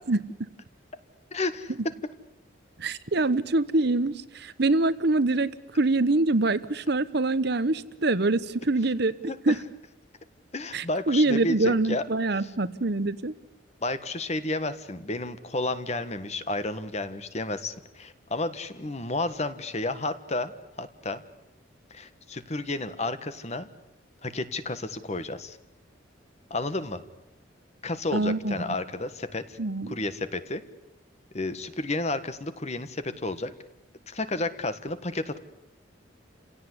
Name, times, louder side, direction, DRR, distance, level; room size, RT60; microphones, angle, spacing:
voice 1, 1.3-1.7 9.3-9.6 10.5-12.0 12.4-12.5 13.8-20.5 20.8-21.2 21.9-23.7 24.2-25.6 26.5-27.0 27.8-29.6 29.9-30.6 31.3-33.5 34.1-35.4, left 2 dB, 35° left, 11 dB, 1.5 m, -31 dB
voice 2, 2.8-9.1 9.5-9.6 10.7-13.3 28.1-28.5 29.6-29.9, right 2 dB, 55° right, 14 dB, 1.0 m, -24 dB
29.5 x 17.0 x 9.8 m, 0.90 s
head